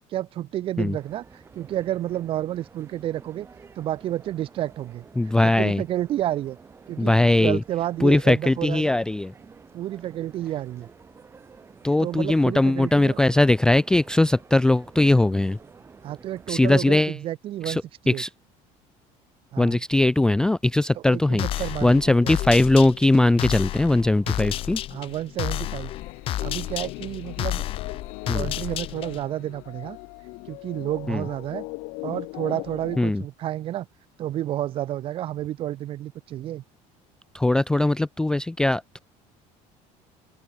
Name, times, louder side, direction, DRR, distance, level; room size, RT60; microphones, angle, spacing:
voice 1, 0.1-3.5 3.8-5.1 5.6-6.6 6.9-7.1 7.4-8.9 9.7-10.9 12.0-13.2 16.0-17.8 18.0-18.2 19.5-19.8 20.9-22.3 24.9-25.9 26.4-27.7 28.3-30.0 30.5-31.6 32.0-33.9 34.2-36.6, right 13 dB, 40° right, 1.0 m, -30 dB
sound 1, 1.0-16.7, right 5 dB, 15° right, 1.8 m, -50 dB
voice 2, 5.2-5.8 7.0-7.6 8.0-9.3 11.8-15.6 16.5-17.2 17.6-18.3 19.6-24.8 28.3-28.5 31.1-31.3 33.0-33.2 37.3-39.0, left 2 dB, 5° left, 0.4 m, -20 dB
sound 2, 21.4-29.3, left 13 dB, 40° left, 1.1 m, -31 dB
sound 3, 25.4-33.0, left 30 dB, 75° left, 0.9 m, -39 dB
open air
cardioid pair, 175°, 15 cm